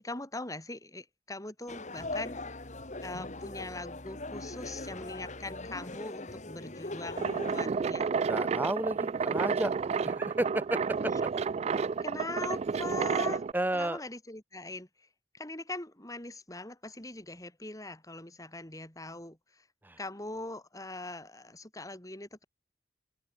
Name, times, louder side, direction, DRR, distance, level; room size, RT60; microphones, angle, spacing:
voice 1, 0.0-2.4 3.0-8.1 12.0-13.5 13.7-15.1 15.3-19.7 20.0-22.4, left 2 dB, 20° left, 4.9 m, -41 dB
sound 1, 1.7-7.7, left 2 dB, 45° left, 3.7 m, -40 dB
sound 2, 7.2-13.5, right 5 dB, 40° right, 0.3 m, -31 dB
voice 2, 8.3-9.7 10.0-11.1 13.5-14.0 19.8-20.0, right 1 dB, 10° right, 1.0 m, -32 dB
head